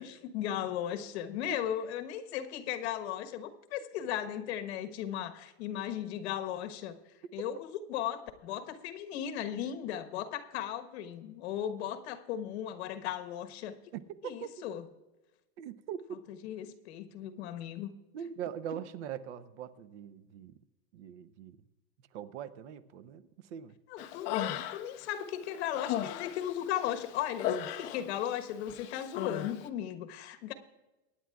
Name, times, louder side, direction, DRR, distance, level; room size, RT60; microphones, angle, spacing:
voice 1, 0.0-6.9 7.3-13.8 14.2-14.8 16.4-17.9 23.9-30.5, left 10 dB, 65° left, 8 dB, 1.3 m, -36 dB
voice 2, 13.9-14.5 15.6-16.2 18.1-20.6 20.9-21.6 22.1-23.8, right 8 dB, 80° right, 14 dB, 0.9 m, -42 dB
Human voice, 24.0-25.1 25.4-28.4 28.7-29.5, left 11 dB, 35° left, 0.6 m, -36 dB
24.0 x 10.0 x 2.4 m, 1.1 s
supercardioid pair, 175°, 34 cm